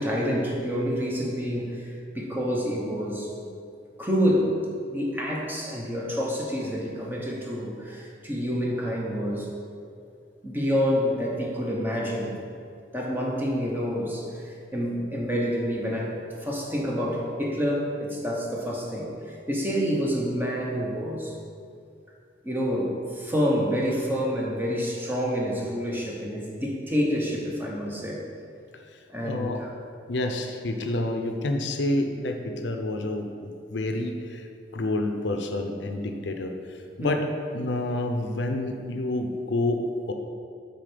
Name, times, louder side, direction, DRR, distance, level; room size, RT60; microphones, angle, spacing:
voice 1, 0.0-3.5 4.0-4.6 4.9-9.5 10.4-12.3 12.9-21.3 22.4-28.2 29.1-29.7 37.0-37.2, equal, 10° right, -2 dB, 1.0 m, -28 dB
voice 2, 29.2-29.6 30.1-34.5 34.7-37.3 37.5-40.1, left 1 dB, 80° left, 5 dB, 0.6 m, -28 dB
7.5 x 4.5 x 5.1 m, 2.4 s
head